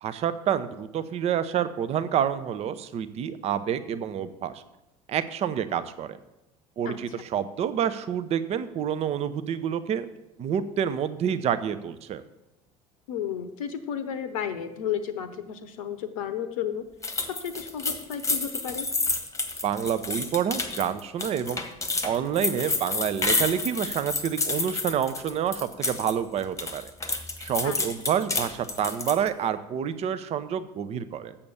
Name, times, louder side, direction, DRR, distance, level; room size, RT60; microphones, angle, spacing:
voice 1, 0.0-4.6 5.1-6.2 6.8-10.1 10.4-12.2 19.6-21.6 22.0-26.8 27.4-31.4, right 9 dB, 35° right, 12 dB, 0.5 m, -28 dB
voice 2, 6.9-7.2 13.1-16.8 17.3-18.9 27.6-27.8, left 8 dB, 65° left, 10 dB, 0.7 m, -33 dB
sound 1, 17.0-26.1 26.4-29.3, left 3 dB, 15° left, 1.2 m, -29 dB
7.0 x 6.9 x 6.7 m, 0.95 s
figure-of-eight pair, 65°, 19 cm